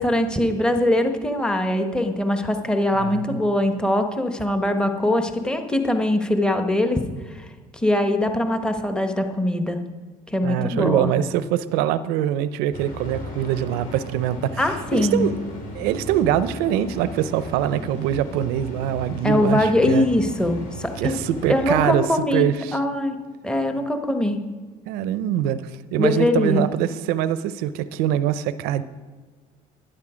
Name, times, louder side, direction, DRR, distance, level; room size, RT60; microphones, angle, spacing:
voice 1, 0.0-7.0 7.3-7.5 7.7-9.8 10.3-11.2 14.6-15.3 19.2-21.2 21.5-23.2 23.4-24.4 26.0-26.7, left 1 dB, 5° left, 6 dB, 1.2 m, -22 dB
voice 2, 3.0-3.4 10.4-15.3 15.7-20.1 21.0-22.1 22.3-22.8 24.9-25.6 25.9-28.8, right 11 dB, 85° right, 14 dB, 0.6 m, -23 dB
sound 1, 12.7-21.9, equal, 60° left, 3.6 m, -36 dB
12.0 x 10.0 x 5.0 m, 1.4 s
cardioid pair, 95°, 16 cm